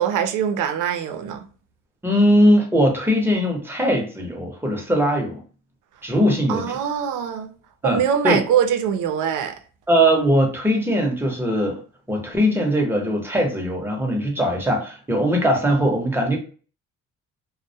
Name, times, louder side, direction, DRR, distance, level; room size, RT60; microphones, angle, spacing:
voice 1, 0.0-1.4 6.5-7.5 7.8-9.5, right 8 dB, 85° right, 0.5 m, -22 dB
voice 2, 2.0-5.4 6.0-6.8 7.8-8.4 9.9-11.8 12.1-16.4, equal, 5° right, 0.7 m, -20 dB
2.2 x 2.1 x 2.7 m
cardioid pair, 90°, 30 cm